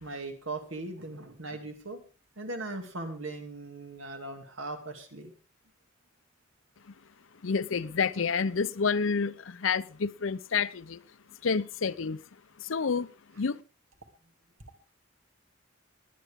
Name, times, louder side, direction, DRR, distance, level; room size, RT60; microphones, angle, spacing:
voice 1, 0.0-2.0 2.4-5.3, right 2 dB, 85° right, 2.5 m, -39 dB
voice 2, 7.4-11.0 11.4-12.2 12.6-13.1 13.4-13.6, left 5 dB, 85° left, 0.6 m, -29 dB
20.0 x 9.4 x 3.6 m
head